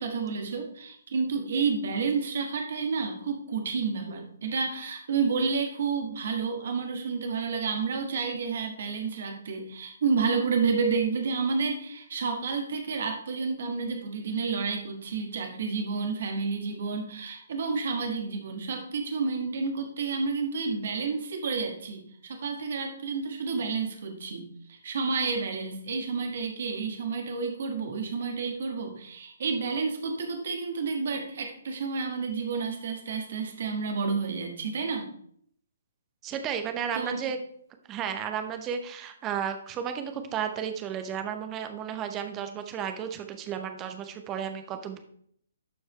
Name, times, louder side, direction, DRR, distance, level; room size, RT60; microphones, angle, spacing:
voice 1, 0.0-35.1 36.9-37.2, right 5 dB, 50° right, 4 dB, 1.5 m, -30 dB
voice 2, 36.2-37.4 37.9-45.0, right 8 dB, 20° right, 7 dB, 0.8 m, -33 dB
12.0 x 4.7 x 3.1 m, 0.65 s
figure-of-eight pair, 130°, 0 cm